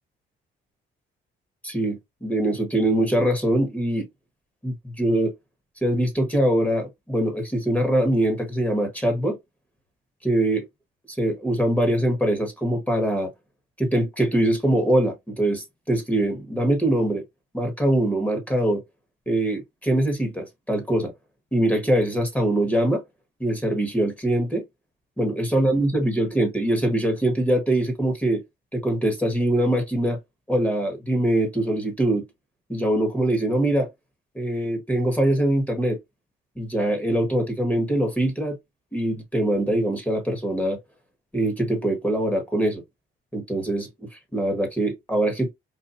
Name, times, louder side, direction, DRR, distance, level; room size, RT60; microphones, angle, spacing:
voice 1, 1.6-4.1 4.6-5.3 5.8-9.4 10.2-10.7 11.1-13.3 13.8-17.2 17.5-18.8 19.3-21.1 21.5-23.0 23.4-24.6 25.2-28.4 28.7-30.2 30.5-32.3 32.7-33.9 34.3-36.0 36.6-38.6 38.9-40.8 41.3-42.8 43.3-45.5, right 1 dB, 10° left, 1.4 m, -23 dB
4.2 x 2.4 x 2.6 m
cardioid pair, 90°, 20 cm